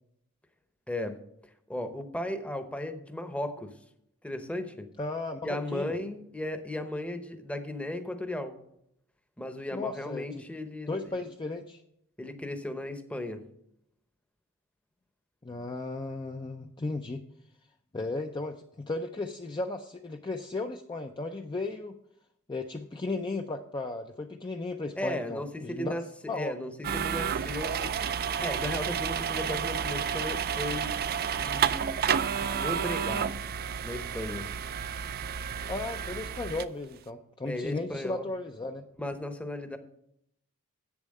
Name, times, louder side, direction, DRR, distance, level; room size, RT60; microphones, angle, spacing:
voice 1, 0.9-1.2 1.7-3.7 4.2-4.9 5.4-8.6 9.4-11.2 12.2-13.4 24.9-26.0 26.3-27.9 28.4-31.0 31.4-31.9 32.3-33.3 33.8-34.5 37.4-38.3 39.0-39.8, left 1 dB, 5° left, 8 dB, 0.8 m, -35 dB
voice 2, 5.0-5.9 9.7-10.4 10.9-11.8 15.4-17.2 17.9-22.0 22.5-25.9 26.3-26.5 35.7-38.8, left 2 dB, 20° left, 5 dB, 0.5 m, -35 dB
sound 1, 26.8-36.6, right 7 dB, 45° right, 0.4 m, -31 dB
8.2 x 7.1 x 6.5 m, 0.76 s
head